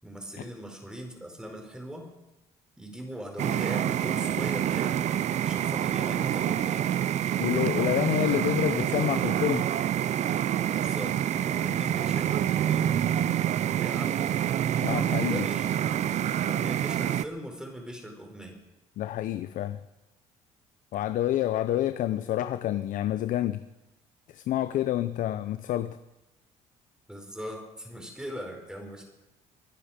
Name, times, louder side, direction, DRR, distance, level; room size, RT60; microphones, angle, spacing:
voice 1, 0.0-2.1 2.8-5.0 5.4-6.9 10.6-13.2 13.8-14.3 15.3-16.1 16.4-18.6 27.1-29.0, equal, 5° right, 2 dB, 4.9 m, -40 dB
sound 1, 3.4-17.2, right 10 dB, 55° right, 0.6 m, -27 dB
voice 2, 7.4-9.7 14.8-15.5 19.0-19.8 20.9-23.6 24.3-26.0, left 12 dB, 65° left, 12 dB, 0.7 m, -28 dB
23.5 x 10.0 x 5.2 m, 0.99 s
cardioid pair, 95°, 14 cm